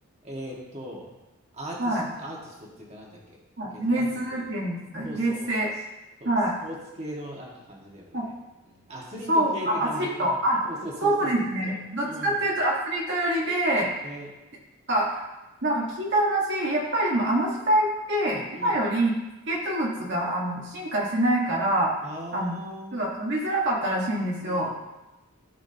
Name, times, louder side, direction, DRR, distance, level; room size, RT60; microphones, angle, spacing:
voice 1, 0.2-1.1 1.5-3.4 3.7-4.4 5.0-5.5 6.2-6.3 6.6-8.3 8.6-11.7 12.0-12.4 14.0-14.3 18.5-18.8 22.0-23.0 24.4-24.7, equal, 30° right, -3 dB, 1.8 m, -39 dB
voice 2, 3.6-5.7 6.2-6.5 8.1-8.2 9.3-10.6 11.0-13.9 14.9-15.2 15.6-19.1 19.5-21.9 22.3-22.5 22.9-24.7, right 1 dB, 50° right, -4 dB, 1.5 m, -25 dB
15.5 x 6.1 x 2.9 m, 1.0 s
head